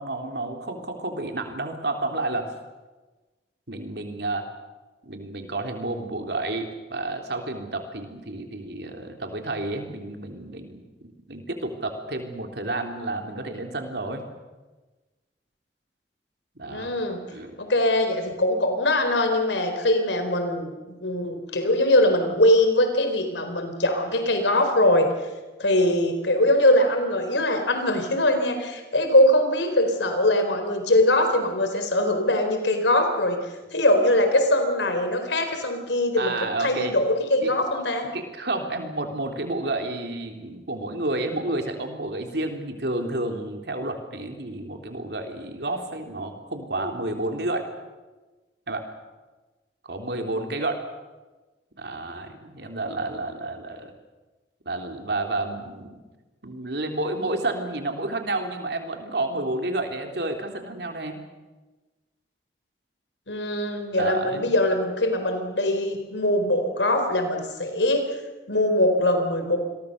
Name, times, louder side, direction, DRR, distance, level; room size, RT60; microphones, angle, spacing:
voice 1, 0.0-2.5 3.7-4.4 5.0-10.8 11.3-14.3 16.6-17.0 17.3-17.5 36.2-36.9 37.4-37.5 38.1-47.7 48.7-48.8 49.8-50.8 51.8-53.9 54.7-56.0 56.4-61.2 64.0-64.5, right 2 dB, 65° right, 4 dB, 3.6 m, -30 dB
voice 2, 16.7-17.2 17.6-25.1 25.6-33.4 33.7-38.1 63.3-68.1 68.5-69.6, left 1 dB, 90° left, 6 dB, 4.1 m, -22 dB
28.0 x 22.0 x 6.7 m, 1.2 s
head